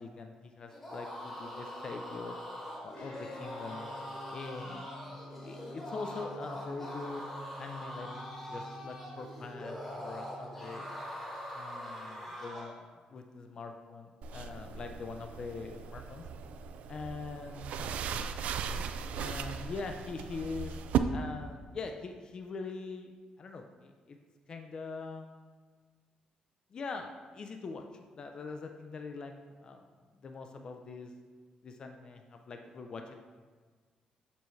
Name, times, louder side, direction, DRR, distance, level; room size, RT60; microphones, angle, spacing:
voice 1, 0.0-2.4 2.8-3.9 4.3-4.9 5.4-7.2 7.6-10.9 11.5-16.3 16.9-17.8 19.2-20.7 21.1-23.1 23.4-24.2 24.5-25.3 26.7-27.8 28.1-29.8 30.2-31.1 31.6-33.2, left 4 dB, 35° left, 5 dB, 0.4 m, -43 dB
sound 1, 0.7-12.8, left 1 dB, 10° left, 1.1 m, -43 dB
Guitar, 2.9-11.0, equal, 70° left, 1.6 m, -50 dB
sound 2, 14.2-21.0, right 8 dB, 70° right, 0.3 m, -37 dB
6.8 x 5.6 x 3.1 m, 1.5 s
cardioid pair, 175°, 2 cm